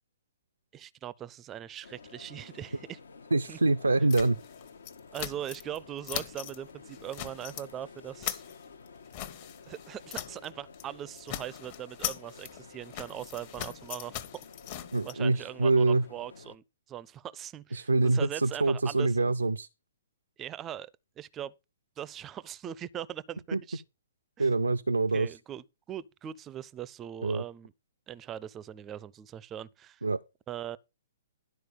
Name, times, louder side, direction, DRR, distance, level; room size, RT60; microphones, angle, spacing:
voice 1, 0.7-3.0 3.5-3.6 5.1-8.4 9.7-14.2 15.0-19.2 20.4-20.9 21.2-21.5 22.0-23.8 24.4-24.5 25.1-27.7 28.1-30.0 30.5-30.8, right 11 dB, 20° right, 0.5 m, -40 dB
sound 1, 1.8-16.6, left 5 dB, 65° left, 0.9 m, -51 dB
voice 2, 3.3-4.4 14.9-16.0 17.7-19.7 23.5-23.6 24.4-25.3 27.2-27.4 30.0-30.2, right 3 dB, 75° right, 0.5 m, -25 dB
sound 2, 4.1-5.8 6.0-6.6 6.9-7.7 8.0-10.5 10.7-10.9 11.2-15.1, left 11 dB, 35° left, 1.1 m, -40 dB
12.0 x 4.5 x 6.5 m
figure-of-eight pair, 120°, 0 cm